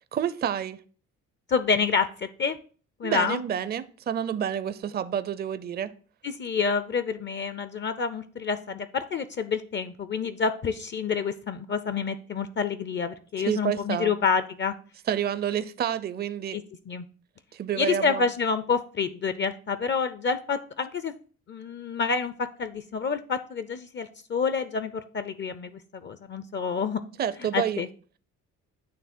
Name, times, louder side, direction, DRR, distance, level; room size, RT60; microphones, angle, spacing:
voice 1, 0.1-0.8 3.0-5.9 13.4-14.1 15.1-16.6 17.5-18.3 27.2-27.9, right 9 dB, 35° right, 14 dB, 0.4 m, -29 dB
voice 2, 1.5-2.6 3.0-3.4 6.2-14.7 16.5-17.0 17.7-21.1 21.5-27.0 27.5-27.9, left 5 dB, 40° left, 12 dB, 0.5 m, -28 dB
8.7 x 3.2 x 4.2 m, 0.41 s
cardioid pair, 90°, 30 cm